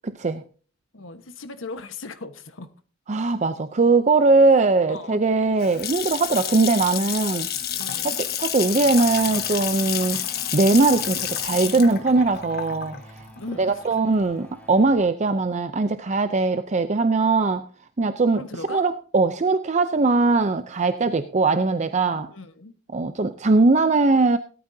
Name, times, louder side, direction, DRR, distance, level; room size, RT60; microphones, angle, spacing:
voice 1, 0.9-2.7 4.9-5.2 7.7-8.2 13.3-13.8 18.3-18.8 22.3-22.7, left 3 dB, 80° left, 9 dB, 1.3 m, -37 dB
voice 2, 3.1-7.5 8.0-10.2 10.5-13.3 13.6-17.7 18.0-18.4 18.7-22.3 22.9-24.4, right 3 dB, 35° right, 10 dB, 0.6 m, -20 dB
Water tap faucet / Sink (filling or washing) / Splash splatter, 5.4-14.2, left 10 dB, 55° left, 1.4 m, -29 dB
sound 1, 8.5-15.0, left 1 dB, 10° left, 2.2 m, -47 dB
17.5 x 12.5 x 2.8 m, 0.39 s
head